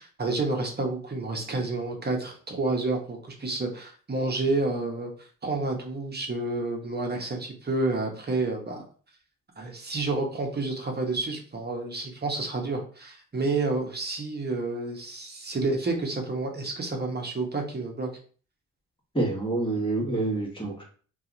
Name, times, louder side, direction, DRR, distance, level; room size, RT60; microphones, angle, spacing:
voice 1, 0.0-5.1 5.4-8.8 9.6-18.1, right 3 dB, 30° right, 2 dB, 0.9 m, -29 dB
voice 2, 19.1-20.8, right 2 dB, 15° left, -1 dB, 1.3 m, -27 dB
2.7 x 2.4 x 3.8 m, 0.42 s
cardioid pair, 80°, 34 cm